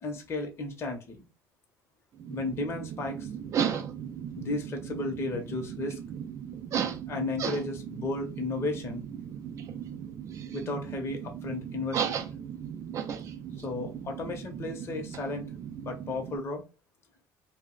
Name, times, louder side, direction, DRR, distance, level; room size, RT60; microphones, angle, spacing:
voice 1, 0.0-1.2 2.3-3.3 4.4-6.0 7.1-9.0 10.5-12.2 13.6-15.5 15.8-16.6, left 2 dB, 40° left, 3 dB, 0.7 m, -34 dB
sound 1, 2.1-16.4, right 8 dB, 45° right, 0.3 m, -36 dB
2.3 x 2.0 x 3.7 m, 0.29 s
cardioid pair, 120°, 7 cm